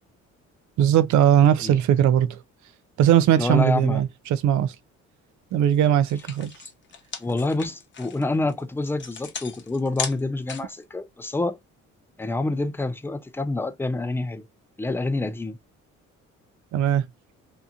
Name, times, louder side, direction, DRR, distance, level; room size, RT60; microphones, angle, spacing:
voice 1, 0.8-2.4 3.0-4.7 5.5-6.5 16.7-17.1, right 10 dB, 70° right, 0.5 m, -19 dB
voice 2, 3.4-4.0 7.2-11.6 12.2-14.5 14.8-15.6, left 2 dB, 10° left, 0.4 m, -27 dB
sound 1, 5.6-5.8 6.0-10.8, left 6 dB, 40° left, 0.8 m, -36 dB
2.8 x 2.5 x 2.3 m
cardioid pair, 90°, 30 cm